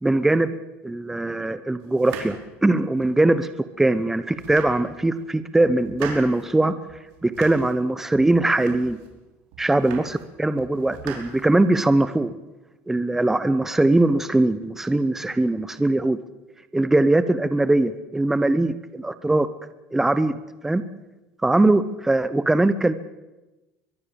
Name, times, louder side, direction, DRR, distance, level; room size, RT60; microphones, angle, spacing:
voice 1, 0.0-0.5 0.8-3.5 3.8-6.8 7.2-9.0 9.6-12.3 12.9-16.2 16.7-19.5 19.9-20.4 20.6-20.8 21.4-22.9, right 2 dB, 5° right, 12 dB, 0.9 m, -21 dB
sound 1, 1.9-3.3 3.8-3.9 4.3-5.2 5.6-6.5 6.9-7.8 8.1-9.1 9.5-10.3 10.6-11.9, right 7 dB, 80° right, 5.4 m, -40 dB
23.0 x 22.0 x 7.1 m, 1.1 s
cardioid pair, 145°, 5 cm